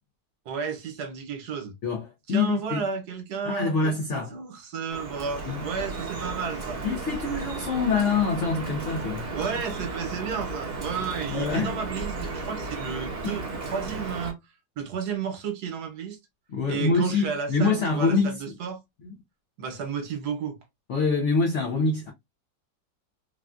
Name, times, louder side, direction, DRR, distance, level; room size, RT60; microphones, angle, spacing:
voice 1, 0.4-1.7 2.3-6.8 9.3-14.4 14.8-16.2 16.7-18.8 19.6-20.6, right 6 dB, 65° right, 1.3 m, -32 dB
voice 2, 1.8-2.9 3.4-4.3 5.5-5.7 6.8-9.3 11.3-11.8 13.2-13.4 16.5-18.4 20.9-22.1, left 4 dB, 75° left, 0.6 m, -25 dB
Drip, 4.9-14.3, right 3 dB, 40° right, 0.6 m, -34 dB
3.5 x 2.3 x 2.4 m
omnidirectional pair, 1.9 m